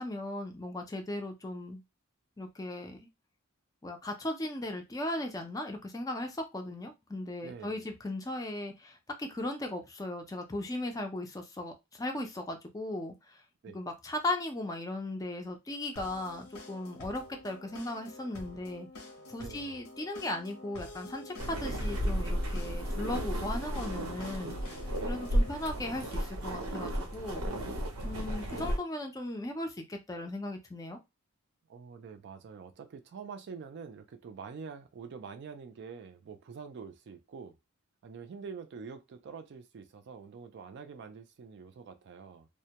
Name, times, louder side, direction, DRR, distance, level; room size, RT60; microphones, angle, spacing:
voice 1, 0.0-1.8 2.4-3.1 3.8-13.4 13.7-18.9 19.3-24.8 25.0-27.5 28.0-31.0, left 1 dB, 15° left, 0.4 m, -37 dB
voice 2, 7.4-7.9 13.6-13.8 19.2-19.8 31.7-37.5 38.0-42.5, right 5 dB, 55° right, 0.3 m, -46 dB
sound 1, 16.0-25.6, left 2 dB, 90° left, 0.7 m, -48 dB
sound 2, 21.4-28.8, equal, 90° right, 0.7 m, -33 dB
2.1 x 2.1 x 2.8 m
head